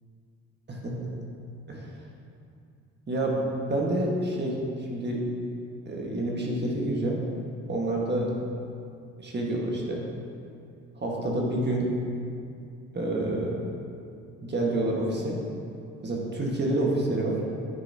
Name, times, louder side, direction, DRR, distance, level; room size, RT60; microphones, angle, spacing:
voice 1, 0.7-1.2 1.7-1.9 3.1-5.2 5.8-7.2 7.7-8.3 9.2-10.0 11.0-11.9 12.9-13.5 14.4-15.4 16.0-17.4, right 1 dB, 35° right, -2 dB, 1.5 m, -28 dB
9.7 x 6.7 x 2.8 m, 2.5 s
cardioid pair, 90°, 30 cm